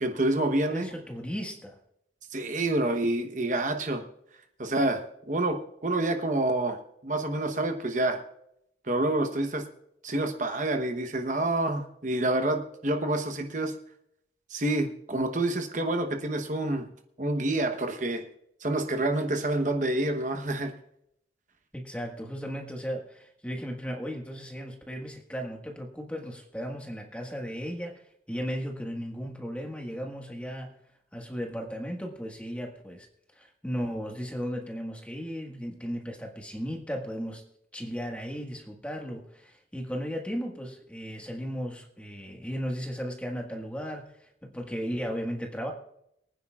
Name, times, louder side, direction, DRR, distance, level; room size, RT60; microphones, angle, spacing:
voice 1, 0.0-0.9 2.3-4.0 4.6-6.8 7.0-8.2 8.9-9.7 10.0-13.7 14.5-16.9 17.2-18.2 18.6-20.7, right 2 dB, 45° right, 5 dB, 1.0 m, -28 dB
voice 2, 0.7-1.8 21.7-30.8 31.1-33.1 33.4-37.4 37.7-45.7, equal, 5° left, 1 dB, 1.6 m, -36 dB
24.0 x 9.8 x 2.4 m, 0.74 s
head